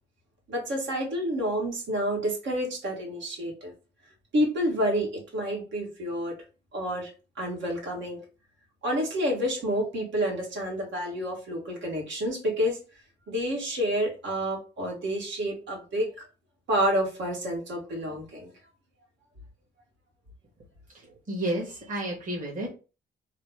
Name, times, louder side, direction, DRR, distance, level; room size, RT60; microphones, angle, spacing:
voice 1, 0.5-3.7 4.3-6.4 6.7-7.1 7.4-8.2 8.8-12.8 13.3-16.1 16.7-18.5, equal, 70° right, 0 dB, 1.4 m, -29 dB
voice 2, 20.9-22.7, right 1 dB, 40° right, -4 dB, 1.5 m, -32 dB
3.1 x 2.0 x 3.3 m, 0.33 s
cardioid pair, 90°, 20 cm